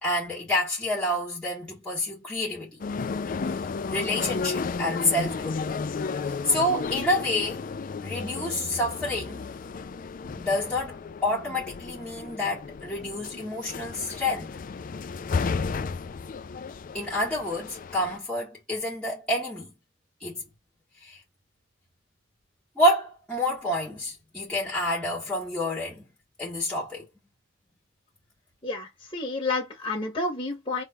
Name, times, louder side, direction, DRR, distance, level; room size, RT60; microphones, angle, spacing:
voice 1, 0.0-2.8 3.9-5.6 6.4-7.6 8.0-9.5 10.4-14.6 16.9-19.7 20.2-20.4 21.0-21.2 22.8-26.1 26.4-27.1, left 1 dB, 5° left, 1.7 m, -28 dB
sound 1, 2.8-18.2, left 4 dB, 45° left, 0.4 m, -33 dB
voice 2, 28.6-30.8, left 3 dB, 25° left, 1.7 m, -30 dB
4.3 x 3.6 x 2.4 m
head